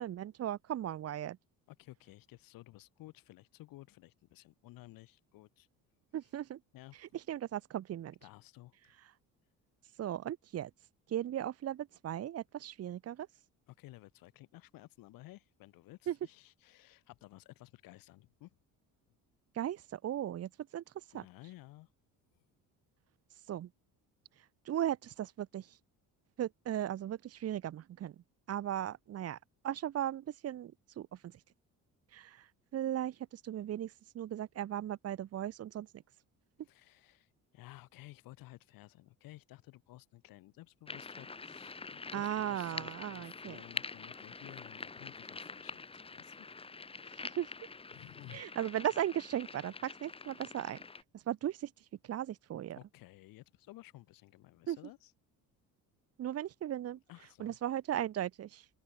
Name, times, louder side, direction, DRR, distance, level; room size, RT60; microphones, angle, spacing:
voice 1, 0.0-1.4 6.1-6.6 6.9-8.1 10.0-10.7 11.1-13.3 16.1-16.2 19.5-21.2 23.3-23.7 24.4-25.8 26.4-28.1 28.5-29.4 29.6-31.4 32.1-35.9 42.1-43.6 47.1-47.5 48.3-50.8 51.1-52.8 54.7-54.8 56.2-57.0 57.4-58.7, right 11 dB, 45° right, 2.7 m, -37 dB
voice 2, 1.7-5.7 6.7-7.0 8.2-9.0 13.7-18.6 21.1-21.9 36.6-46.4 46.8-47.3 47.9-48.5 52.8-55.1 57.1-57.6, left 17 dB, 85° left, 7.3 m, -55 dB
sound 1, 40.9-51.0, left 4 dB, 15° left, 7.5 m, -46 dB
open air
cardioid pair, 175°, 33 cm